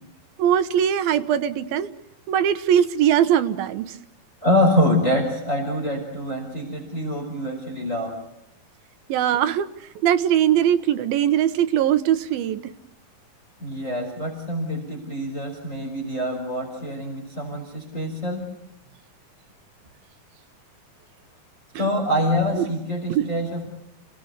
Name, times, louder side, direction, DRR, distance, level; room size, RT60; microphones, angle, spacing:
voice 1, 0.4-1.9 2.3-4.0 9.1-9.7 10.0-12.6 21.7-21.9 22.6-22.7 23.1-23.3, right 10 dB, 80° right, 11 dB, 2.9 m, -21 dB
voice 2, 4.4-8.1 13.6-18.4 21.7-23.7, left 1 dB, 20° left, 2 dB, 4.7 m, -25 dB
29.0 x 19.0 x 8.2 m, 0.82 s
omnidirectional pair, 4.1 m